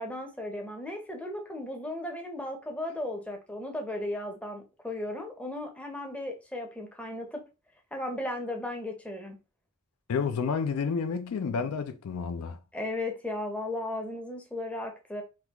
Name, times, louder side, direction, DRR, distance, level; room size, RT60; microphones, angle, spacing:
voice 1, 0.0-7.4 7.9-9.4 12.7-15.2, left 1 dB, 5° left, 0.6 m, -35 dB
voice 2, 10.1-12.6, left 5 dB, 70° left, 0.4 m, -30 dB
3.5 x 2.3 x 2.9 m
head